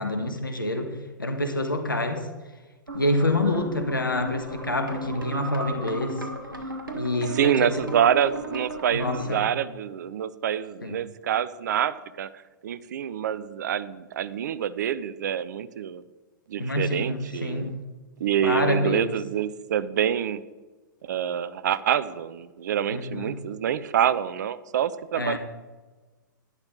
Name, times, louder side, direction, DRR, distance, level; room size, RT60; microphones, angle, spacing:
voice 1, 0.0-2.3 2.9-6.2 6.9-7.8 8.9-9.4 10.8-11.0 16.6-17.8 18.4-19.1 22.9-23.4 25.2-25.4, left 1 dB, 85° left, 7 dB, 1.5 m, -27 dB
sound 1, 2.9-9.2, right 2 dB, 85° right, 1.8 m, -36 dB
voice 2, 7.3-12.3 12.6-16.0 16.5-17.7 18.2-20.4 21.1-25.4, right 9 dB, 60° right, 16 dB, 0.6 m, -26 dB
11.5 x 11.0 x 3.9 m, 1.2 s
figure-of-eight pair, 105°, 11 cm